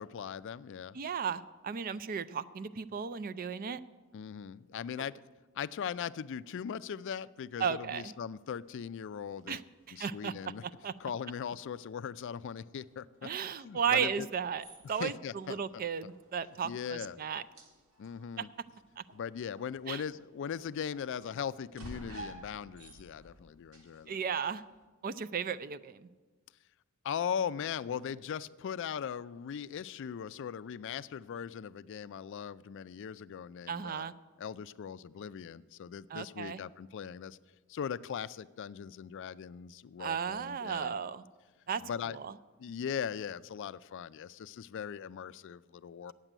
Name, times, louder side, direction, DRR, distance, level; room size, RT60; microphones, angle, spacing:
voice 1, 0.0-1.0 4.1-5.1 5.6-9.6 9.9-10.6 11.0-14.3 14.8-15.8 16.6-17.2 18.0-18.5 19.1-24.2 27.0-34.1 34.4-37.4 37.7-41.0 41.8-42.2 42.6-46.1, left 7 dB, 60° left, 17 dB, 0.3 m, -39 dB
voice 2, 0.9-3.8 7.6-8.1 9.5-9.6 9.9-10.3 10.6-10.9 13.2-17.4 19.0-19.1 19.9-20.0 24.1-24.6 25.0-26.1 33.7-34.1 36.1-36.6 40.0-41.2 41.7-41.8 42.1-42.4, right 7 dB, 40° right, 15 dB, 0.4 m, -35 dB
sound 1, 8.6-24.9, right 1 dB, 90° right, 1.6 m, -55 dB
8.9 x 7.5 x 9.1 m, 1.3 s
head